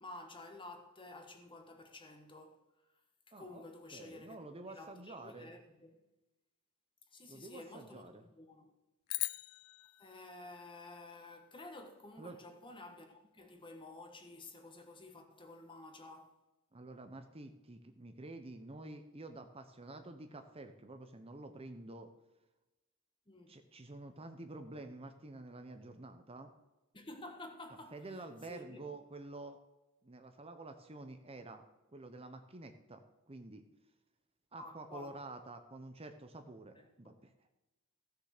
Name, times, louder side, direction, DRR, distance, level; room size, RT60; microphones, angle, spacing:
voice 1, 0.0-2.6 3.3-6.0 7.1-8.7 10.0-16.4 23.3-23.5 26.9-28.9 34.6-35.2 36.7-37.1, left 2 dB, 25° left, 1.5 m, -52 dB
voice 2, 3.3-3.6 3.9-5.5 7.3-8.2 12.2-12.4 16.7-22.1 23.5-26.5 27.9-29.6 30.0-31.6 31.9-33.6 34.5-37.3, right 2 dB, 25° right, 0.8 m, -49 dB
sound 1, 9.1-11.5, left 19 dB, 85° left, 0.4 m, -42 dB
15.5 x 6.6 x 6.6 m
head